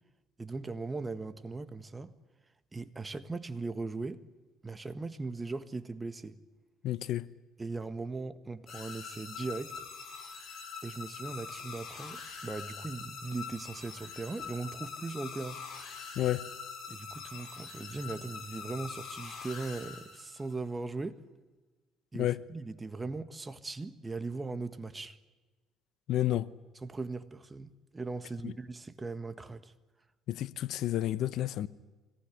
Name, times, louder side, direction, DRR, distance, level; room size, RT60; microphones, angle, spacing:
voice 1, 0.4-2.1 2.7-4.2 4.6-6.4 7.6-9.7 10.8-15.6 16.9-21.2 22.1-25.2 26.8-29.7, right 3 dB, 20° right, 1.6 m, -39 dB
voice 2, 6.8-7.3 16.2-16.5 22.1-22.4 26.1-26.5 28.4-28.5 30.3-31.7, left 13 dB, 65° left, 0.9 m, -30 dB
sound 1, 8.7-20.5, left 6 dB, 45° left, 6.6 m, -44 dB
25.0 x 19.0 x 9.9 m
cardioid pair, 110°, 0 cm